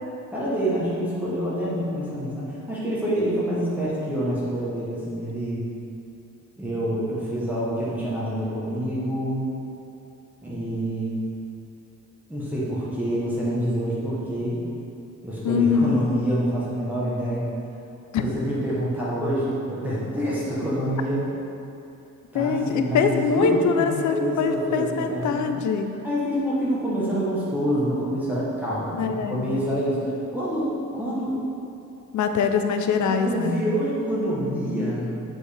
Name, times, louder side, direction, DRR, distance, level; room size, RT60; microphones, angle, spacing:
voice 1, 0.3-5.6 6.6-9.5 10.4-11.2 12.3-14.6 15.2-17.5 18.2-21.2 22.3-25.6 26.0-31.4 33.0-35.2, equal, 5° right, -9 dB, 1.0 m, -26 dB
voice 2, 15.4-16.0 18.1-18.2 22.3-25.9 28.9-29.5 32.1-33.5, left 6 dB, 65° left, 6 dB, 0.5 m, -23 dB
7.5 x 4.5 x 3.3 m, 2.7 s
wide cardioid pair, 170°, 31 cm